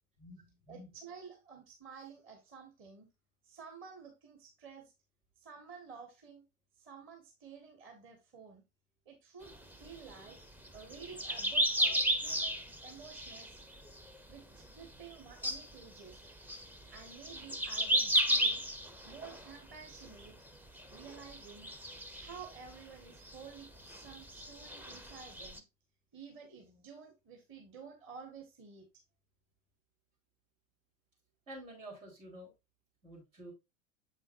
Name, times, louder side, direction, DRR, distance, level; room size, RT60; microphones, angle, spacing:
voice 1, 0.2-0.9 31.5-32.5 33.0-33.5, right 1 dB, 75° right, -3 dB, 4.5 m, -50 dB
voice 2, 0.7-3.1 3.4-4.9 5.4-6.4 6.7-8.6 9.0-10.4 10.7-13.6 14.3-16.2 16.9-18.6 19.0-20.4 20.9-21.7 22.2-25.6 26.1-28.9, right 6 dB, 30° right, 2 dB, 1.7 m, -52 dB
sound 1, 9.5-14.3 14.6-15.1 15.4-20.5 20.8-22.8 23.1-25.6, right 1 dB, 5° right, 0.5 m, -34 dB
7.1 x 5.6 x 2.6 m, 0.23 s
figure-of-eight pair, 85°, 38 cm